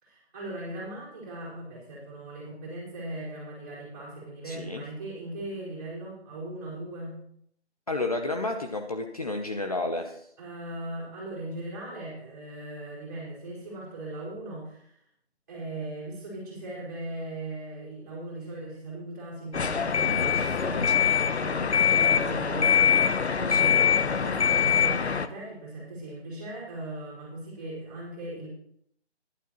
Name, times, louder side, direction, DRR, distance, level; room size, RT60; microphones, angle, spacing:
voice 1, 0.0-7.1 10.4-14.9 15.5-28.5, right 1 dB, 20° right, -7 dB, 4.6 m, -39 dB
voice 2, 4.4-4.8 7.9-10.2 20.0-20.4 23.5-23.9, left 2 dB, 35° left, 4 dB, 0.7 m, -32 dB
sound 1, 19.5-25.3, left 8 dB, 75° left, 0.9 m, -23 dB
12.5 x 11.5 x 3.0 m, 0.70 s
figure-of-eight pair, 170°, 33 cm